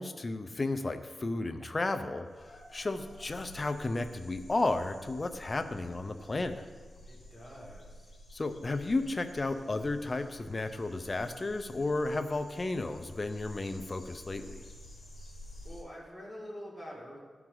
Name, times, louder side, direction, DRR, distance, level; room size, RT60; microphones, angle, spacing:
voice 1, 0.0-6.6 8.3-14.6, left 2 dB, 30° left, 9 dB, 0.5 m, -33 dB
sound 1, 2.2-15.8, left 1 dB, 50° left, 1.6 m, -51 dB
voice 2, 7.0-8.1 15.6-17.2, equal, 10° left, -4 dB, 2.2 m, -46 dB
13.0 x 4.6 x 3.8 m, 1.4 s
wide cardioid pair, 95°, 0 cm